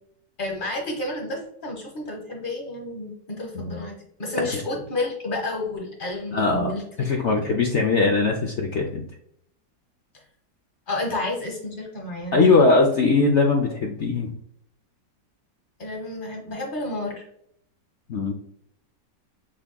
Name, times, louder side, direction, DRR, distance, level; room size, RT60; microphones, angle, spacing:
voice 1, 0.4-6.8 7.1-7.2 10.9-12.6 15.8-17.3, left 2 dB, 30° left, 0 dB, 1.3 m, -31 dB
voice 2, 6.3-6.7 7.0-9.1 12.3-14.3 18.1-18.3, left 3 dB, 70° left, 2 dB, 0.6 m, -20 dB
6.4 x 3.5 x 2.2 m, 0.70 s
omnidirectional pair, 1.9 m